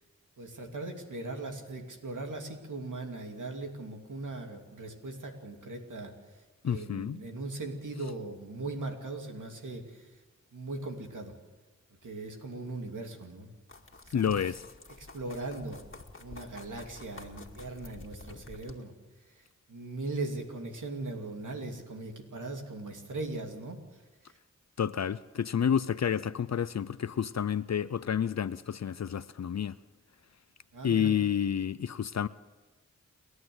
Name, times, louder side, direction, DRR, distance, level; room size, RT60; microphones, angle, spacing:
voice 1, 0.4-6.1 6.6-10.1 10.5-11.3 12.0-13.5 14.1-14.3 15.0-15.8 16.2-18.9 19.7-23.8 30.7-31.1, right 2 dB, 85° right, 2.8 m, -39 dB
voice 2, 6.6-7.2 14.1-14.7 24.8-29.8 30.8-32.3, left 8 dB, 60° left, 0.5 m, -29 dB
sound 1, 13.7-18.7, left 3 dB, 40° left, 2.1 m, -49 dB
29.0 x 11.5 x 7.9 m
wide cardioid pair, 55°, 30 cm